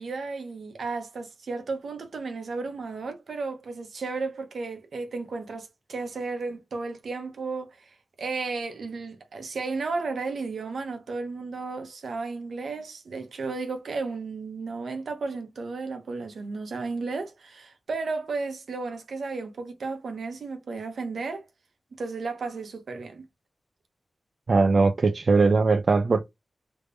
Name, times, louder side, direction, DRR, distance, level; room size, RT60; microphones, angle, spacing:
voice 1, 0.0-21.5 22.0-23.2, right 4 dB, 85° right, 1.1 m, -33 dB
voice 2, 24.5-26.2, right 4 dB, 55° right, 0.5 m, -20 dB
3.4 x 3.2 x 2.6 m
wide cardioid pair, 95°, 0 cm